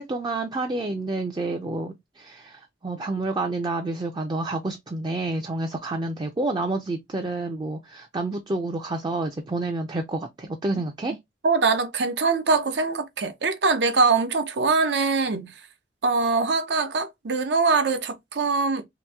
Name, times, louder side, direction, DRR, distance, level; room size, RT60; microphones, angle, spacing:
voice 1, 0.0-11.2, right 2 dB, 25° right, 0.4 m, -29 dB
voice 2, 11.4-15.5 16.0-18.8, right 4 dB, 75° right, 0.6 m, -23 dB
3.0 x 2.5 x 3.3 m
head